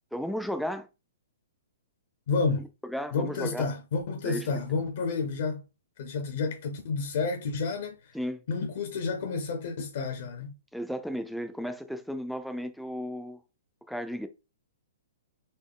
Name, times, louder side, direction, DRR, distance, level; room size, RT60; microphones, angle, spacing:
voice 1, 0.1-0.9 2.6-3.7 4.2-4.5 8.1-8.4 10.7-13.4 13.9-14.3, equal, ahead, 0.3 m, -34 dB
voice 2, 2.3-2.7 3.1-5.6 6.0-8.1 8.5-10.5, left 4 dB, 45° left, 0.7 m, -30 dB
4.2 x 3.0 x 3.6 m
hypercardioid pair, 175°, 0 cm